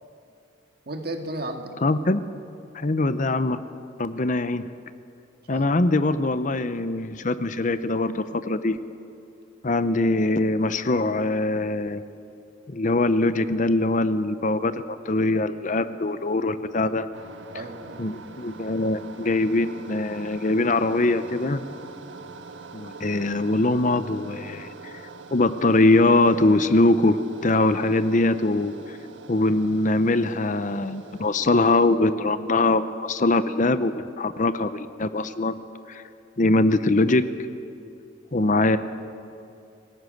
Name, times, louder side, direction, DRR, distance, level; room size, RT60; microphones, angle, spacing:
voice 1, 0.9-1.7 5.5-5.7 16.8-17.0 17.5-18.0 22.1-22.3 38.4-38.5, right 1 dB, 55° right, 4 dB, 2.0 m, -34 dB
voice 2, 1.8-2.2 2.7-3.6 4.0-4.6 5.5-8.8 9.6-12.0 12.7-17.1 18.0-21.6 22.7-24.9 25.3-29.0 29.3-32.8 33.1-35.6 35.9-36.0 36.4-37.2 38.3-38.8, left 2 dB, 40° left, 12 dB, 0.7 m, -22 dB
sound 1, 17.1-31.9, right 3 dB, 75° right, 1.5 m, -43 dB
27.0 x 18.5 x 6.5 m, 2.5 s
head